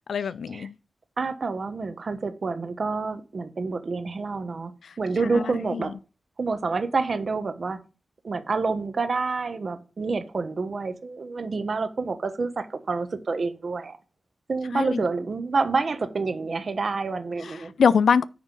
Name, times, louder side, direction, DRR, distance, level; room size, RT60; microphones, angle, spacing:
voice 1, 0.1-0.7 5.4-5.8 14.7-15.0 17.4-18.2, left 6 dB, 90° left, 0.4 m, -23 dB
voice 2, 1.2-5.9 6.4-7.8 8.2-14.0 14.5-17.7, right 4 dB, 65° right, 1.3 m, -28 dB
9.4 x 3.6 x 6.8 m
cardioid pair, 50°, 0 cm